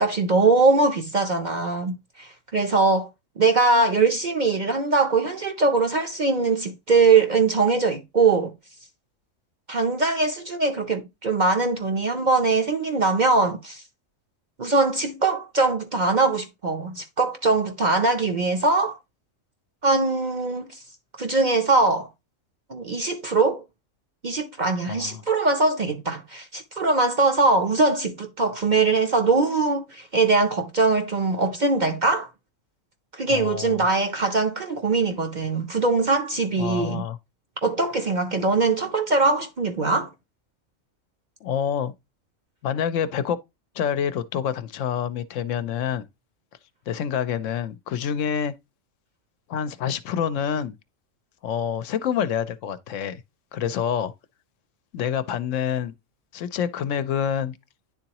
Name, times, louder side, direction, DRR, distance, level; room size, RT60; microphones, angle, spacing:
voice 1, 0.0-3.1 3.4-8.5 9.7-13.8 14.6-19.0 19.8-20.8 21.2-22.1 22.7-23.6 24.2-32.3 33.1-37.0 37.6-40.1, right 3 dB, 45° right, 0.6 m, -22 dB
voice 2, 24.9-25.2 33.3-33.8 36.6-37.2 41.4-41.9 42.6-43.4 43.7-46.1 46.9-48.5 49.5-50.8 51.4-53.2 53.5-54.1 54.9-55.9 56.3-57.5, left 8 dB, 75° left, 0.9 m, -27 dB
10.0 x 3.8 x 2.9 m
omnidirectional pair, 1.4 m